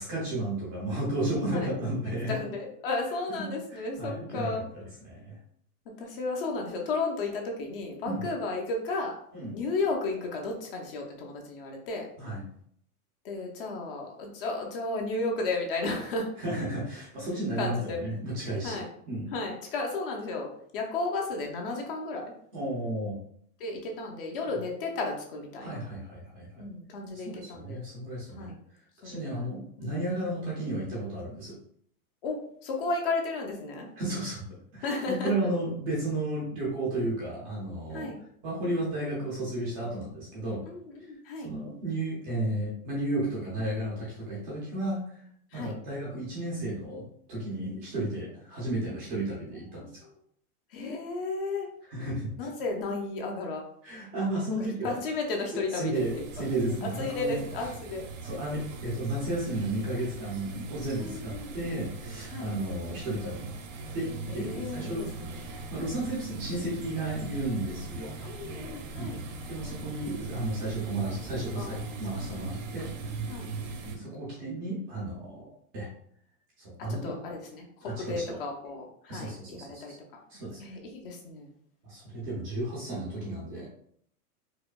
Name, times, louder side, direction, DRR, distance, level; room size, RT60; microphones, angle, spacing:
voice 1, 0.0-2.4 3.4-5.4 8.0-8.2 9.3-9.5 12.2-12.4 16.4-19.3 22.5-23.2 25.6-26.6 27.1-28.5 29.0-31.6 34.0-38.1 38.4-40.6 41.0-41.1 41.4-45.2 45.5-50.0 51.9-52.5 53.8-55.0 55.7-57.7 58.2-63.5 63.9-65.1 65.4-68.1 69.0-69.1 69.5-72.9 73.9-75.9 76.6-77.1 77.8-78.4 79.1-80.0 80.3-80.6 81.8-83.7, right 1 dB, 15° right, -5 dB, 0.5 m, -33 dB
voice 2, 2.3-4.6 6.0-9.2 9.5-12.1 13.2-16.3 17.6-18.0 18.6-18.9 19.3-22.2 23.6-25.8 26.6-27.8 28.4-28.5 29.0-29.4 29.8-29.9 32.2-33.9 34.8-35.3 37.9-38.2 40.7-41.5 45.5-45.8 50.7-51.7 52.4-53.6 54.8-56.4 56.8-58.0 61.0-61.8 62.3-62.5 64.3-65.4 65.8-65.9 68.2-69.2 71.6-71.9 73.3-73.5 76.9-79.9 80.6-81.5, left 3 dB, 40° left, 1 dB, 0.6 m, -33 dB
indoors WC bathroom ambient room tone, 55.9-74.0, right 4 dB, 55° right, 0.8 m, -40 dB
4.8 x 2.2 x 2.2 m, 0.66 s
supercardioid pair, 155°, 45 cm